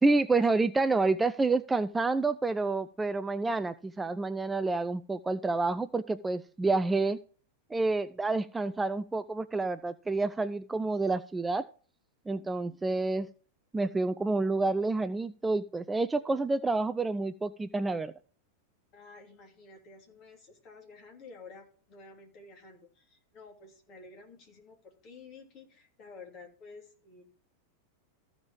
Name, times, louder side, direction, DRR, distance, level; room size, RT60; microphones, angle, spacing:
voice 1, 0.0-7.2 7.7-11.7 12.3-13.3 13.7-18.1, right 3 dB, 10° right, 13 dB, 0.3 m, -28 dB
voice 2, 18.9-27.2, left 4 dB, 35° left, 2 dB, 3.0 m, -51 dB
14.5 x 5.1 x 4.6 m, 0.42 s
figure-of-eight pair, 90°, 0 cm